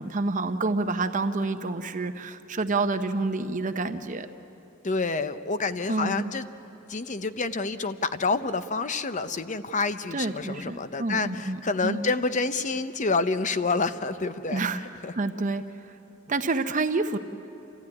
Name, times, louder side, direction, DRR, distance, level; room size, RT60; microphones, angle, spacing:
voice 1, 0.0-4.3 5.9-6.3 10.1-12.1 14.5-14.8 15.2-15.9 16.3-17.2, right 3 dB, 40° right, 8 dB, 0.8 m, -28 dB
voice 2, 4.8-6.5 6.9-14.6 15.0-15.1, left 3 dB, 35° left, 11 dB, 0.7 m, -28 dB
29.0 x 14.5 x 9.7 m, 2.9 s
head